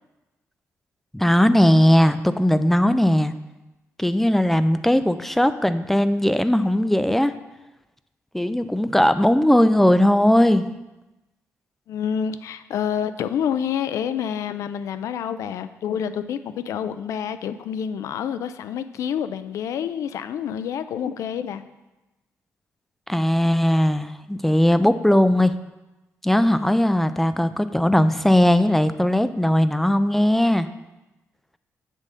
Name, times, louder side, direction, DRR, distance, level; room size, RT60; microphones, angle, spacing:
voice 1, 1.1-3.3 4.0-7.3 8.3-10.7 23.1-25.5 26.2-30.7, left 1 dB, 5° left, 11 dB, 0.3 m, -18 dB
voice 2, 11.9-21.6, left 8 dB, 80° left, 12 dB, 0.4 m, -28 dB
7.5 x 3.7 x 6.4 m, 1.0 s
cardioid pair, 125°, 5 cm